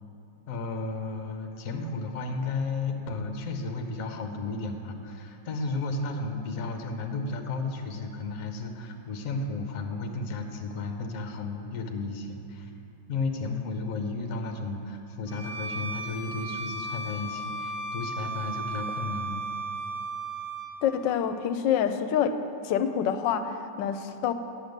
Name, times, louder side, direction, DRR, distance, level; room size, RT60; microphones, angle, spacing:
voice 1, 0.5-12.7 13.1-19.4, left 3 dB, 55° left, 4 dB, 1.1 m, -33 dB
Bowed string instrument, 15.3-20.7, right 2 dB, 65° right, 3.0 m, -35 dB
voice 2, 20.8-22.3 22.6-24.3, left 8 dB, 85° left, 10 dB, 1.3 m, -26 dB
8.8 x 7.8 x 6.5 m, 2.8 s
omnidirectional pair, 1.9 m